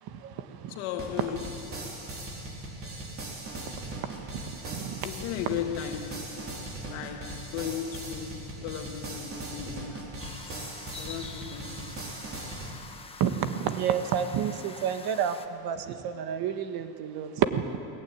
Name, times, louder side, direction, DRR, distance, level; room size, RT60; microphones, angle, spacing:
voice 1, 0.0-0.8 3.8-5.0 13.2-17.8, right 8 dB, 50° right, 1.6 m, -30 dB
voice 2, 0.7-2.0 5.0-10.3 10.9-12.0, left 9 dB, 70° left, 2.0 m, -37 dB
sound 1, 1.0-12.7, right 2 dB, 30° right, 4.1 m, -39 dB
sound 2, 10.2-15.5, left 4 dB, 10° left, 1.1 m, -46 dB
22.5 x 19.0 x 9.5 m
cardioid pair, 155°, 46 cm